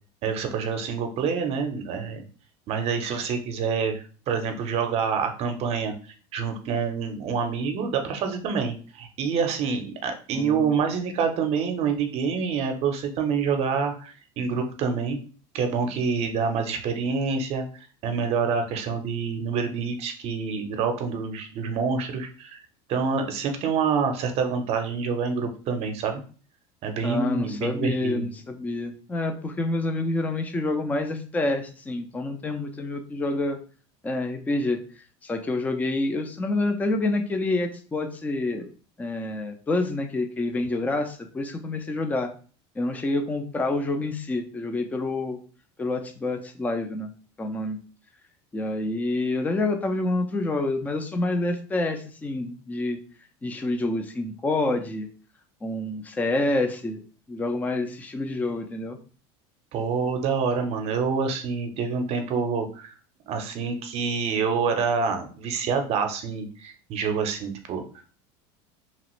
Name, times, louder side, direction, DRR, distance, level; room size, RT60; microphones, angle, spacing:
voice 1, 0.2-2.2 2.7-5.9 6.3-15.2 15.5-17.6 18.0-22.6 22.9-26.2 26.8-28.3 59.7-62.9 63.3-67.8, right 5 dB, 45° right, 6 dB, 0.6 m, -27 dB
voice 2, 10.3-10.8 27.0-33.6 34.0-34.8 35.2-38.7 39.0-42.3 42.8-45.4 45.8-47.1 47.4-47.8 48.5-53.0 53.4-55.1 55.6-57.0 57.3-59.0, left 2 dB, 10° left, 5 dB, 0.4 m, -27 dB
2.9 x 2.4 x 3.0 m, 0.39 s
supercardioid pair, 130°, 14 cm